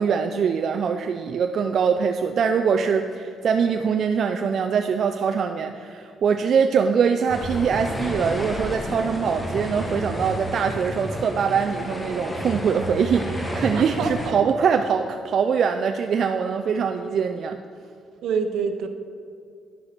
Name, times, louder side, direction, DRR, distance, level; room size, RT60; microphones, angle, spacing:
voice 1, 0.0-17.6, right 6 dB, 60° right, 5 dB, 0.5 m, -23 dB
sound 1, 7.3-14.3, equal, 20° left, 1.4 m, -31 dB
voice 2, 13.7-14.6 18.2-18.9, right 5 dB, 80° right, 7 dB, 0.9 m, -27 dB
10.5 x 6.6 x 5.9 m, 2.4 s
cardioid pair, 90°, 0 cm